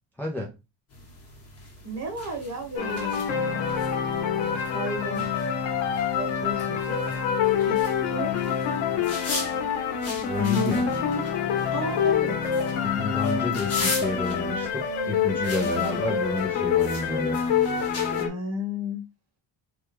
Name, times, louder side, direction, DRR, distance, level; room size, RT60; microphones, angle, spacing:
voice 1, 0.2-0.5 10.3-10.8 12.8-17.4, left 2 dB, 5° left, -3 dB, 0.4 m, -30 dB
sound 1, 0.9-18.2, left 3 dB, 30° left, 1.1 m, -39 dB
voice 2, 1.8-3.1 3.4-3.6 4.7-5.3 6.1-6.9 7.7-7.8 8.0-8.3 10.6-10.8 11.7-12.4 15.6-15.9 18.2-19.0, equal, 35° right, 2 dB, 1.2 m, -33 dB
sound 2, 2.8-18.3, left 7 dB, 85° left, 0.9 m, -26 dB
3.5 x 2.2 x 2.9 m, 0.25 s
cardioid pair, 150°, 45 cm